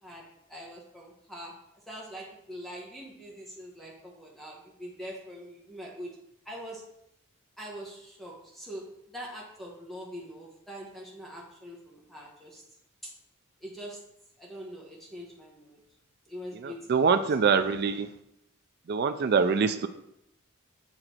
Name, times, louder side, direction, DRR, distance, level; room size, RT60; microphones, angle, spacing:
voice 1, 0.0-1.6 1.9-6.2 6.4-6.8 7.6-12.6 13.0-13.1 13.6-14.0 14.4-15.8 16.3-17.5, equal, ahead, -3 dB, 1.1 m, -43 dB
voice 2, 16.6-18.1 18.9-19.9, right 5 dB, 50° right, 9 dB, 0.4 m, -24 dB
8.0 x 3.9 x 4.4 m, 0.80 s
head